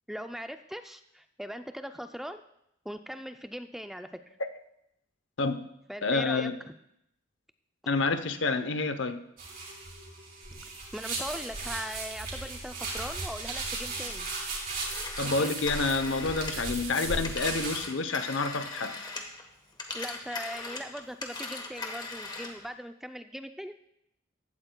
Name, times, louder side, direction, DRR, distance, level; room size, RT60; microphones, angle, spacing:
voice 1, 0.1-2.4 2.9-4.1 5.9-6.5 10.9-14.3 15.4-15.5 19.9-23.7, equal, ahead, 8 dB, 0.3 m, -40 dB
voice 2, 6.0-6.5 7.9-9.2 15.2-18.9, left 3 dB, 65° left, 10 dB, 0.7 m, -28 dB
dry rub, 9.4-17.8, right 3 dB, 45° right, 3.4 m, -36 dB
Telephone, 14.7-19.4 19.7-22.6, left 3 dB, 20° left, 1.2 m, -39 dB
15.5 x 12.5 x 2.2 m, 0.80 s
head